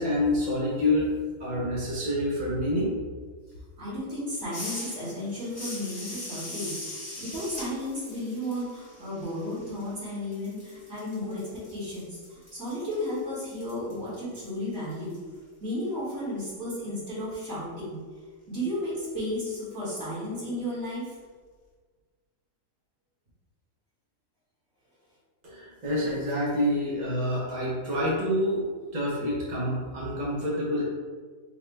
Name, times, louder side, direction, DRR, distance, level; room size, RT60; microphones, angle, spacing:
voice 1, 0.0-3.0 25.4-30.8, left 1 dB, 40° right, -6 dB, 0.7 m, -27 dB
voice 2, 3.8-15.2 15.6-18.0 18.5-21.2, left 1 dB, 60° right, -9 dB, 1.8 m, -33 dB
sound 1, 4.5-10.0 10.3-15.2, left 1 dB, 15° left, 0.9 m, -42 dB
4.0 x 2.1 x 4.4 m, 1.5 s
omnidirectional pair, 1.5 m